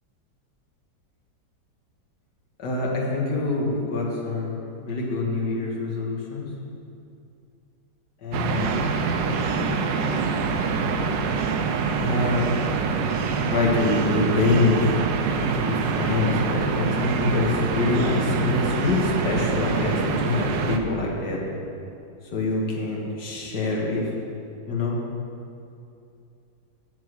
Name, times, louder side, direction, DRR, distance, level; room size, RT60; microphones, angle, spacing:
voice 1, 2.6-6.5 8.2-8.8 12.0-12.4 13.4-14.9 15.2-21.4 22.3-24.1 24.7-25.0, left 3 dB, 70° left, -2 dB, 2.1 m, -25 dB
sound 1, 8.3-20.8, right 5 dB, 90° right, 1.4 m, -25 dB
8.2 x 7.1 x 6.2 m, 2.6 s
omnidirectional pair, 1.9 m